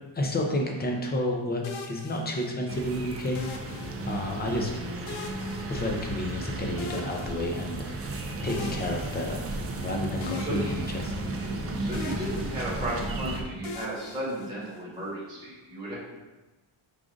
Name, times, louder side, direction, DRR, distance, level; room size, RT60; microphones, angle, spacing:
voice 1, 0.1-3.4 4.0-4.7 5.7-8.0 8.4-9.4 9.8-11.1, left 1 dB, 20° left, 1 dB, 0.5 m, -30 dB
sound 1, 1.6-2.8 3.3-4.5 5.1-6.4 6.8-8.0 8.5-9.8 10.2-11.6 11.9-13.1 13.6-15.0, left 4 dB, 65° left, 0.6 m, -42 dB
sound 2, 2.7-13.4, right 2 dB, 30° right, 0.4 m, -34 dB
voice 2, 11.7-16.0, right 1 dB, 10° right, -6 dB, 1.1 m, -34 dB
4.8 x 2.5 x 3.8 m, 1.1 s
cardioid pair, 140°, 50 cm